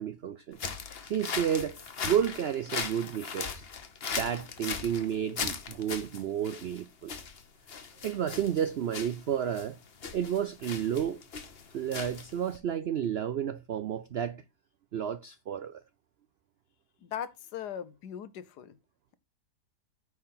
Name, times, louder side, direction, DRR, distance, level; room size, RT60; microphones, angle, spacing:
voice 1, 0.0-3.7 4.1-7.1 8.0-9.8 10.1-11.2 11.7-14.4 14.9-15.8, right 9 dB, 85° right, 0.5 m, -31 dB
sound 1, 0.5-12.6, left 6 dB, 40° left, 1.1 m, -39 dB
voice 2, 17.0-18.8, left 9 dB, 80° left, 1.4 m, -39 dB
9.5 x 4.6 x 5.6 m
omnidirectional pair, 1.7 m